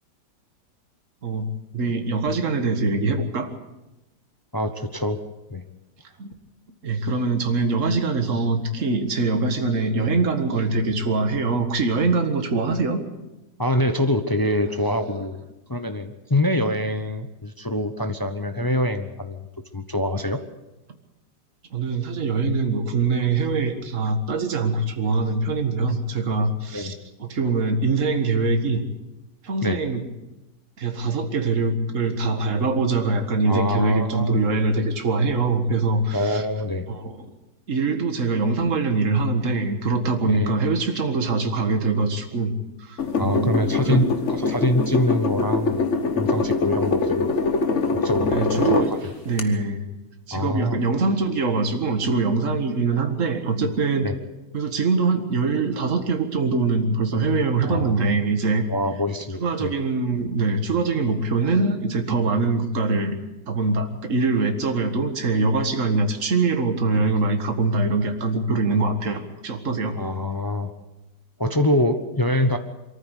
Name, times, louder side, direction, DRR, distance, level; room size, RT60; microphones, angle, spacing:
voice 1, 1.7-3.5 6.2-6.3 6.8-13.0 21.7-26.9 27.2-28.8 29.4-30.0 30.8-36.4 36.9-37.3 37.7-42.5 42.8-44.1 48.3-48.9 49.3-49.8 50.3-54.1 54.5-58.6 59.4-63.2 63.5-69.9, right 3 dB, 45° right, 6 dB, 2.0 m, -23 dB
voice 2, 4.5-5.2 5.5-5.6 13.6-15.4 15.7-19.4 19.7-20.4 26.7-26.9 29.6-29.8 33.4-34.5 36.1-36.8 40.3-40.6 43.2-47.3 47.9-48.4 48.7-49.1 50.3-50.8 54.0-54.1 57.6-58.1 58.7-59.7 70.0-70.7 71.4-72.6, left 1 dB, 20° left, 8 dB, 0.5 m, -25 dB
sound 1, 43.0-48.9 49.4-49.5, left 4 dB, 45° left, 1.5 m, -23 dB
23.5 x 14.0 x 8.2 m, 0.98 s
omnidirectional pair, 2.0 m